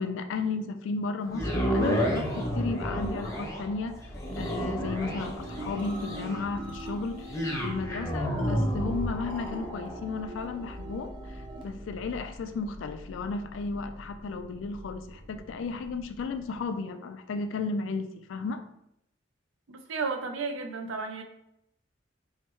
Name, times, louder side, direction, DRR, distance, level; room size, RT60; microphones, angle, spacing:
voice 1, 0.0-4.0 4.4-18.6, left 4 dB, 70° left, 9 dB, 0.3 m, -34 dB
sound 1, 1.3-15.5 16.0-16.1, equal, 15° left, 0.6 m, -33 dB
sound 2, 4.6-11.6, right 1 dB, 25° right, 0.6 m, -42 dB
voice 2, 19.7-21.2, right 4 dB, 75° right, 5 dB, 0.5 m, -33 dB
4.7 x 2.1 x 3.0 m, 0.78 s
head